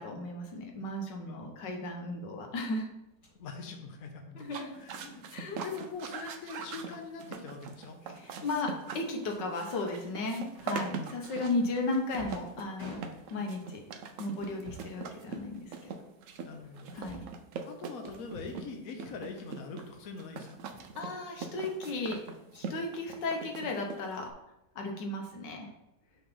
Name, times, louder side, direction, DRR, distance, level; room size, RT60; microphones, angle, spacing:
voice 1, 0.0-2.9 4.3-4.7 5.3-5.6 8.1-13.0 13.3-13.8 14.2-15.9 16.9-17.2 21.0-22.2 22.5-24.3 24.7-25.7, left 2 dB, 80° left, 2 dB, 1.7 m, -35 dB
voice 2, 1.3-1.8 3.4-8.0 10.8-11.1 16.4-16.9 17.6-20.6, left 4 dB, 55° left, 3 dB, 1.2 m, -43 dB
sound 1, 3.1-3.4 4.9-5.1 5.9-6.3 6.7-6.9 7.2-7.4 7.7-7.8 8.5-9.4 10.5-11.0 11.7-13.5 14.3-15.0 15.2-16.0 16.5-17.4 18.0-18.7 19.0-19.5 19.8-20.3 20.6-21.5, left 1 dB, 40° left, 2.6 m, -52 dB
sound 2, 4.4-24.3, right 5 dB, 65° right, 0.8 m, -42 dB
6.4 x 3.3 x 5.4 m, 0.86 s
omnidirectional pair, 1.9 m